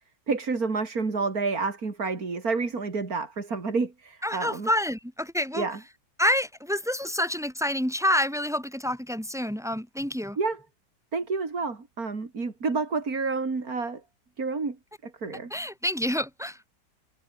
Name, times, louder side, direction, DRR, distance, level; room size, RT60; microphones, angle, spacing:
voice 1, 0.3-4.7 5.5-5.8 10.4-10.6 11.1-14.0 14.4-14.8 15.0-15.5, right 4 dB, 55° right, 3.6 m, -29 dB
voice 2, 4.2-5.7 6.2-10.4 15.5-16.6, left 1 dB, ahead, 5.4 m, -28 dB
omnidirectional pair, 1.9 m